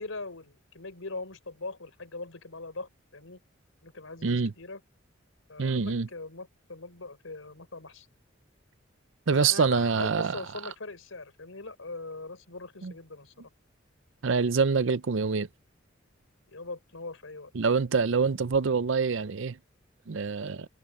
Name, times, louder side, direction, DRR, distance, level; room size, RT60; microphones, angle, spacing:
voice 1, 0.0-3.4 3.8-4.8 5.5-8.1 9.3-13.5 16.5-17.5, left 3 dB, 85° left, 4.0 m, -41 dB
voice 2, 5.6-6.1 9.3-10.3 12.8-12.9 14.2-15.5 17.5-19.6 20.1-20.7, right 5 dB, 70° right, 0.6 m, -25 dB
head